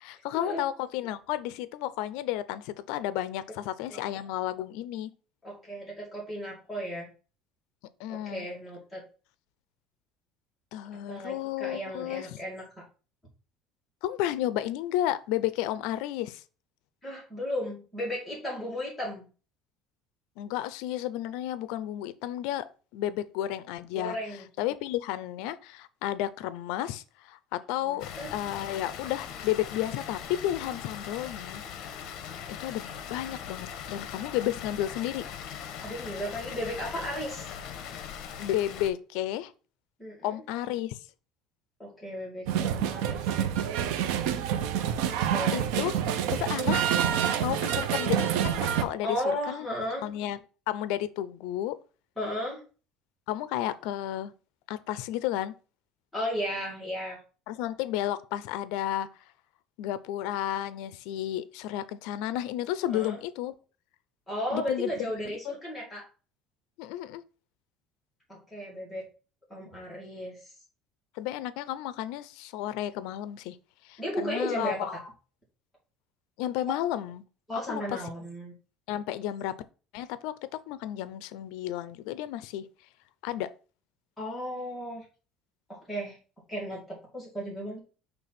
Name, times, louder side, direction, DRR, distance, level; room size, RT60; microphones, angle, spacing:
voice 1, 0.0-5.1 8.0-8.4 10.7-12.3 14.0-16.4 20.4-22.7 22.9-24.2 24.6-31.6 32.6-35.2 38.4-39.5 40.2-41.0 45.5-45.9 46.3-46.8 47.4-49.2 49.5-49.7 50.0-50.4 50.7-51.8 53.3-54.3 54.7-55.5 57.5-59.1 59.8-63.5 64.5-64.9 65.5-65.6 66.8-67.2 71.2-73.6 73.8-74.9 76.4-77.2 77.7-77.8 78.9-79.5 79.9-82.7 83.2-83.5, left 13 dB, 75° left, 0.5 m, -32 dB
voice 2, 5.4-7.1 8.1-9.1 11.1-12.7 17.0-19.3 23.9-24.4 27.8-28.3 35.8-37.5 40.0-40.4 41.8-43.3 45.0-45.6 49.0-50.1 52.2-52.6 56.1-57.2 62.9-63.2 64.3-66.1 68.3-69.1 69.5-70.5 74.0-75.1 77.5-78.5 84.2-85.0 85.7-86.2 86.5-87.8, equal, 5° left, 2.6 m, -35 dB
Water, 28.0-38.9, left 8 dB, 55° left, 1.1 m, -40 dB
sound 1, 42.5-48.8, right 9 dB, 85° right, 0.7 m, -27 dB
6.0 x 3.3 x 5.8 m
cardioid pair, 165°, 0 cm